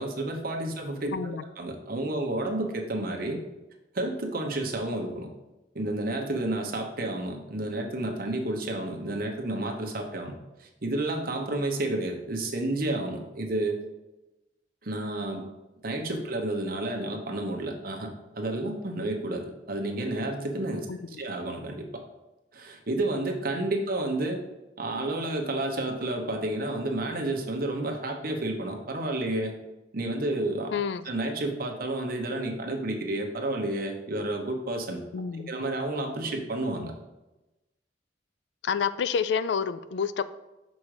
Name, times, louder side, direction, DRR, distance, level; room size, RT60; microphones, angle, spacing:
voice 1, 0.0-3.4 3.9-5.3 5.7-10.3 10.6-13.8 14.8-15.4 15.8-18.1 18.4-22.0 22.5-24.4 24.8-29.5 29.9-30.7 31.0-35.0 35.5-36.9, right 2 dB, 55° right, 2 dB, 1.1 m, -30 dB
voice 2, 1.1-1.4 20.9-21.2 30.7-31.0 35.1-35.5 38.6-40.2, left 6 dB, 70° left, 15 dB, 0.4 m, -29 dB
6.2 x 5.2 x 4.9 m, 1.0 s
head